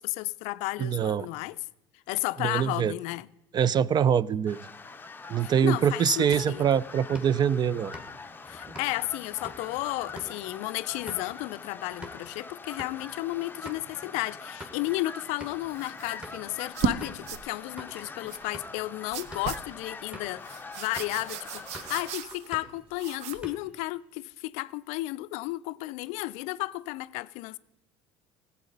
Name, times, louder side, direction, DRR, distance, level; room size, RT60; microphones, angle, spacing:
voice 1, 0.0-1.5 2.1-3.3 5.4-6.7 8.5-27.6, left 20 dB, 65° left, 0.4 m, -33 dB
voice 2, 0.8-1.3 2.4-2.9 3.5-4.6 5.3-7.9, right 8 dB, 35° right, 0.4 m, -24 dB
sound 1, 4.5-22.1, left 4 dB, 15° left, 0.7 m, -44 dB
sound 2, 6.2-12.3 12.6-13.0 13.3-13.4 13.6-13.9 14.3-14.9 15.4-15.7 16.2-16.5 17.0-17.3 17.8-17.9 18.4-18.8 19.2-19.6 20.1-20.4 21.0-21.2 21.6-22.0 22.3-22.8 23.2-23.8, equal, 10° right, 1.9 m, -46 dB
sound 3, 15.7-16.2 16.6-17.0 17.3-17.4 18.3-18.4 19.1-19.7 20.4-22.6 22.9-23.5, right 7 dB, 60° right, 0.7 m, -35 dB
15.5 x 8.4 x 5.3 m
hypercardioid pair, 80°, 13 cm